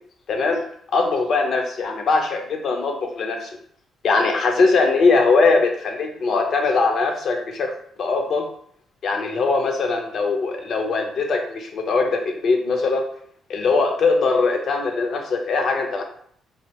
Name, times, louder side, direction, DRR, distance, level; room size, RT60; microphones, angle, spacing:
voice 1, 0.3-0.6 0.9-3.5 4.0-7.7 8.0-8.5 9.0-13.0 13.5-16.0, left 4 dB, 55° left, 3 dB, 0.5 m, -21 dB
2.5 x 2.1 x 2.8 m, 0.64 s
cardioid pair, 120°, 0 cm